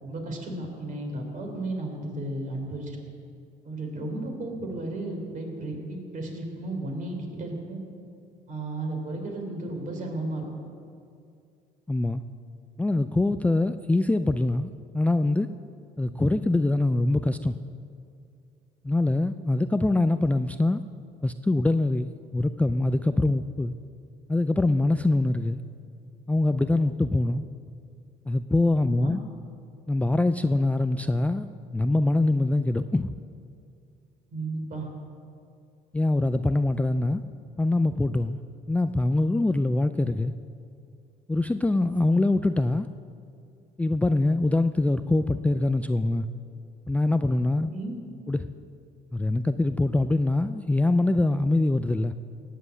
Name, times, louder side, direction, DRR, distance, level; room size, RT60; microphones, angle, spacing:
voice 1, 0.0-3.0 3.6-7.8 8.5-10.5 28.8-29.2 34.3-34.9 47.6-48.0, right 2 dB, 50° right, 2 dB, 3.5 m, -34 dB
voice 2, 11.9-12.2 12.8-15.5 16.0-17.5 18.8-20.8 21.2-23.7 24.3-25.6 26.3-27.5 28.3-29.2 29.9-33.1 35.9-37.2 37.6-38.4 38.7-40.3 41.3-42.9 43.8-46.3 46.9-47.7 48.3-48.5 49.1-52.1, left 2 dB, 10° left, 9 dB, 0.4 m, -24 dB
18.5 x 7.7 x 8.4 m, 2.4 s
cardioid pair, 110°, 17 cm